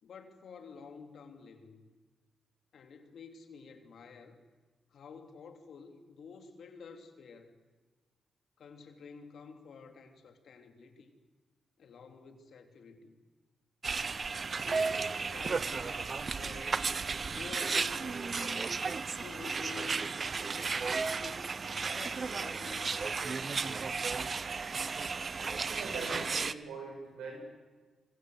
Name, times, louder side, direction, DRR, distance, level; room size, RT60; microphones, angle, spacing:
voice 1, 0.0-1.9 2.7-4.4 4.9-7.6 8.6-11.1 11.8-13.2 14.6-16.9 17.3-18.8 19.1-21.5 21.9-23.5, left 5 dB, 70° left, 6 dB, 3.3 m, -50 dB
sound 1, 13.8-26.5, right 4 dB, 50° right, 0.9 m, -34 dB
voice 2, 25.7-27.4, right 4 dB, 90° right, 2 dB, 7.1 m, -42 dB
25.5 x 25.0 x 8.1 m, 1.3 s
supercardioid pair, 55°, 0 cm